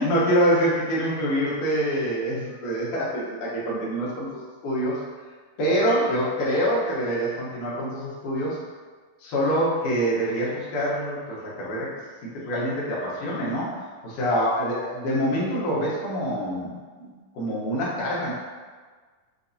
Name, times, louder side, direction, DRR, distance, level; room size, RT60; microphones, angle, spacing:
voice 1, 0.0-5.0 5.6-8.6 9.2-11.9 12.2-17.1 17.3-18.3, equal, 70° left, -7 dB, 2.4 m, -25 dB
6.9 x 2.6 x 2.6 m, 1.5 s
omnidirectional pair, 3.9 m